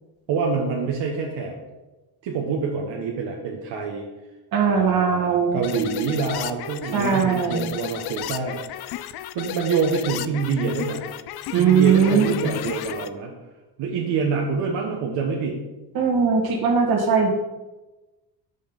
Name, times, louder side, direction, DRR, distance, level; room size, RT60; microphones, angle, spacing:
voice 1, 0.3-1.6 2.2-4.0 4.7-8.6 9.3-11.0 11.6-13.3 13.8-15.6, right 5 dB, 70° right, -1 dB, 1.2 m, -26 dB
voice 2, 4.5-5.6 6.9-7.7 11.5-12.5 15.9-17.3, right 6 dB, 55° right, 2 dB, 1.6 m, -20 dB
sound 1, 5.6-13.1, left 12 dB, 60° left, 0.5 m, -34 dB
5.5 x 5.3 x 5.4 m, 1.1 s
cardioid pair, 105°, 44 cm